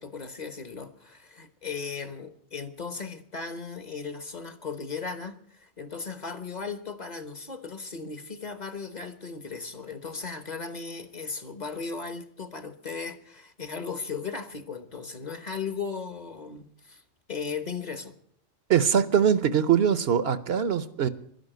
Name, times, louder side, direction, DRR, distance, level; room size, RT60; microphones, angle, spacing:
voice 1, 0.0-17.0 17.3-18.1, left 5 dB, 40° left, 11 dB, 1.1 m, -37 dB
voice 2, 18.7-21.1, right 8 dB, 65° right, 14 dB, 1.0 m, -22 dB
12.0 x 10.5 x 9.0 m, 0.66 s
omnidirectional pair, 1.2 m